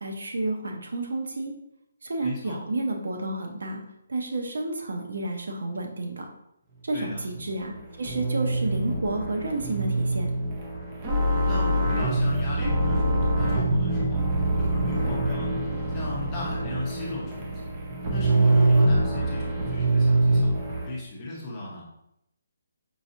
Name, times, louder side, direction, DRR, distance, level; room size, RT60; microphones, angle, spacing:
voice 1, 0.0-1.5 2.0-3.8 4.1-6.3 6.8-10.3, right 2 dB, 75° right, 3 dB, 0.7 m, -30 dB
voice 2, 2.2-2.6 6.9-7.2 11.5-14.2 14.6-15.5 15.9-17.7 18.1-20.5 20.9-21.8, left 2 dB, 15° left, -5 dB, 0.7 m, -37 dB
sound 1, 7.1-20.9, right 2 dB, 20° right, 0.5 m, -24 dB
4.8 x 2.7 x 2.5 m, 0.79 s
hypercardioid pair, 175°, 0 cm